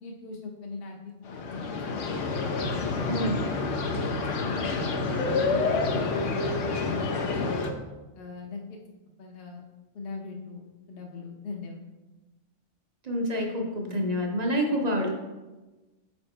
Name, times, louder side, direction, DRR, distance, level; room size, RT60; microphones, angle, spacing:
voice 1, 0.0-1.9 2.9-3.2 4.3-5.5 5.9-7.5 8.1-8.8 9.2-9.6 9.9-10.6 10.9-11.8, left 4 dB, 55° left, 0 dB, 0.9 m, -40 dB
sound 1, 1.2-7.7, left 3 dB, 90° left, 1.0 m, -28 dB
voice 2, 3.1-3.5 13.0-15.1, equal, 40° right, 1 dB, 0.7 m, -27 dB
5.1 x 4.3 x 4.4 m, 1.1 s
omnidirectional pair, 1.2 m